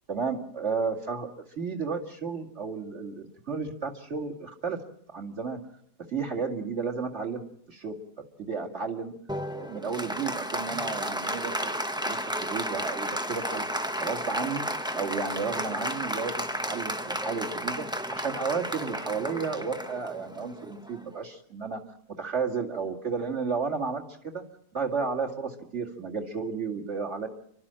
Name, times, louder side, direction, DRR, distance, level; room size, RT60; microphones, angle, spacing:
voice 1, 0.1-1.3 1.6-4.8 5.1-5.6 6.1-8.0 8.4-9.2 9.6-13.6 14.0-14.7 14.9-21.8 22.2-24.4 24.7-27.3, right 5 dB, 40° right, 1 dB, 2.5 m, -32 dB
Applause, 9.3-21.2, equal, 5° right, 0.3 m, -33 dB
30.0 x 12.5 x 8.9 m, 0.71 s
omnidirectional pair, 1.9 m